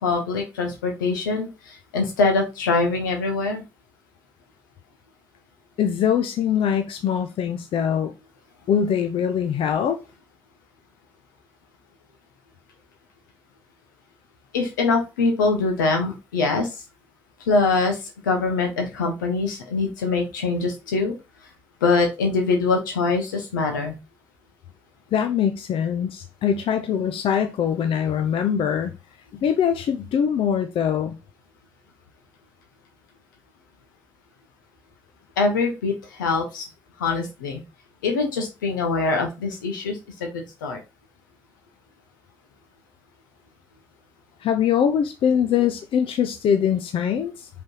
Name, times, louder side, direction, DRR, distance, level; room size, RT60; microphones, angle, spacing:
voice 1, 0.0-3.6 14.5-16.7 17.5-21.1 21.8-24.0 35.4-36.7 37.0-37.6 38.0-40.8, left 3 dB, 90° left, 1.1 m, -23 dB
voice 2, 5.8-8.1 8.7-10.0 25.1-28.9 29.3-31.2 44.4-47.5, left 8 dB, 60° left, 0.7 m, -23 dB
5.3 x 3.4 x 5.5 m
hypercardioid pair, 45°, 10 cm